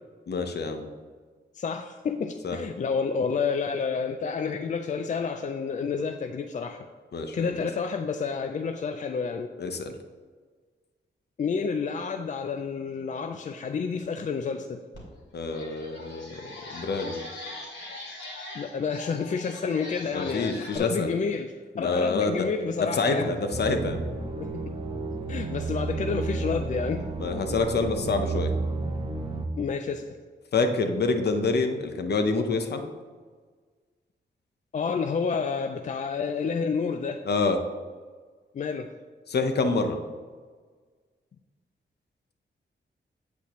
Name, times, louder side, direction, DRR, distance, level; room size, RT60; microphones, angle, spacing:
voice 1, 0.3-0.9 2.4-2.6 7.1-7.5 9.6-9.9 15.3-17.2 20.1-21.2 21.7-22.5 22.8-24.0 27.2-28.5 30.5-32.8 37.3-37.6 39.3-40.0, left 3 dB, 60° left, 6 dB, 0.8 m, -27 dB
voice 2, 1.5-6.8 7.3-9.5 11.4-14.8 18.5-23.3 24.3-24.7 25.3-27.1 29.6-30.2 34.7-37.2 38.5-38.9, left 5 dB, 40° left, 7 dB, 0.4 m, -29 dB
sound 1, 14.9-15.0 15.4-20.8, left 2 dB, 75° left, 2.4 m, -42 dB
sound 2, 23.5-29.5, right 3 dB, 30° right, 0.7 m, -31 dB
8.3 x 8.2 x 3.1 m, 1.5 s
wide cardioid pair, 160°, 19 cm